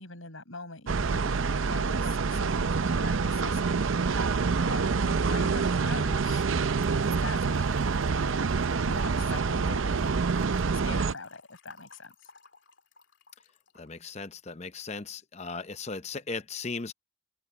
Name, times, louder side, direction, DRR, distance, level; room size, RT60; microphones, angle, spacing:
voice 1, 0.0-4.2 4.7-6.5 7.2-8.0 8.8-10.3 10.7-12.3, left 3 dB, 80° left, 6.6 m, -43 dB
sound 1, 0.9-11.1, right 4 dB, 75° right, 0.6 m, -27 dB
Trickle dribble / Fill (with liquid), 6.8-13.9, left 3 dB, 60° left, 3.0 m, -53 dB
voice 2, 13.8-16.9, left 4 dB, 30° left, 0.7 m, -37 dB
head